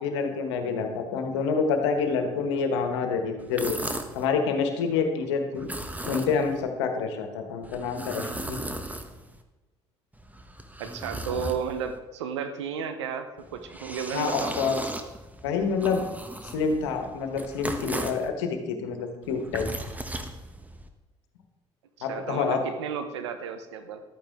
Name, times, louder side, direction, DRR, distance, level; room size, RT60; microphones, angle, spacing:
voice 1, 0.0-3.8 4.1-5.7 6.0-8.6 14.1-14.8 15.4-16.1 16.5-19.7 22.0-22.6, left 5 dB, 85° left, 5 dB, 1.4 m, -27 dB
sound 1, 3.4-4.3 5.6-6.6 7.6-9.4 10.1-12.0 13.4-18.3 19.2-20.9, right 1 dB, 10° right, 1.2 m, -37 dB
voice 2, 10.8-14.6 22.0-24.0, right 7 dB, 90° right, 9 dB, 0.9 m, -33 dB
12.5 x 8.9 x 3.7 m, 1.1 s
hypercardioid pair, 65°, 14 cm